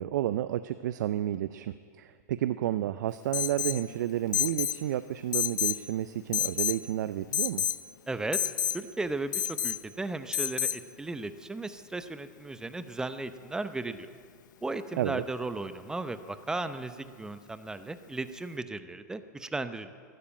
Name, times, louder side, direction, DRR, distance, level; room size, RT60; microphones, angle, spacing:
voice 1, 0.0-7.7 15.0-15.2, right 12 dB, 75° right, 13 dB, 0.5 m, -31 dB
Alarm, 3.3-3.8 4.3-4.8 5.3-5.8 6.3-6.8 7.3-7.8 8.3-8.8 9.3-9.8 10.3-10.8, left 9 dB, 85° left, 0.6 m, -29 dB
voice 2, 8.1-8.4 8.7-14.1 14.6-19.9, right 2 dB, 5° right, 11 dB, 0.7 m, -36 dB
12.5 x 12.0 x 8.8 m, 2.1 s
hypercardioid pair, 125°, 10 cm